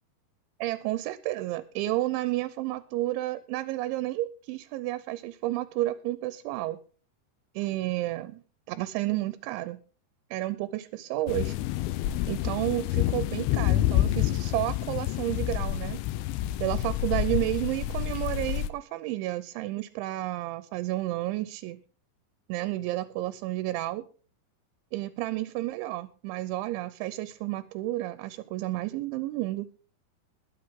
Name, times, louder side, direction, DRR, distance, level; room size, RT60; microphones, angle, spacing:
voice 1, 0.6-6.8 7.6-8.4 8.7-9.8 10.3-11.6 12.3-16.0 16.6-21.8 22.5-24.0 24.9-29.7, right 16 dB, 85° right, 15 dB, 3.1 m, -31 dB
sound 1, 11.3-18.7, left 14 dB, 90° left, 3.2 m, -28 dB
21.5 x 8.4 x 3.7 m, 0.40 s
omnidirectional pair, 5.3 m